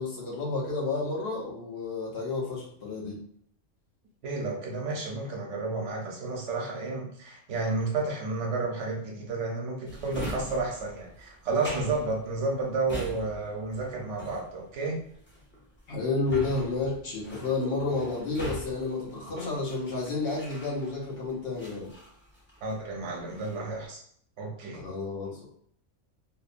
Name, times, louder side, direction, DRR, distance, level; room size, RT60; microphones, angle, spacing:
voice 1, 0.0-3.2 15.9-21.9 24.7-25.5, left 3 dB, 55° left, -3 dB, 0.9 m, -31 dB
voice 2, 4.2-15.0 22.6-24.0 24.4-24.8, right 3 dB, 65° right, 0 dB, 1.0 m, -31 dB
Drawer open or close, 9.9-21.1 21.6-22.8 23.2-23.7, equal, 15° left, 0.4 m, -42 dB
2.8 x 2.0 x 2.5 m, 0.63 s
omnidirectional pair, 1.4 m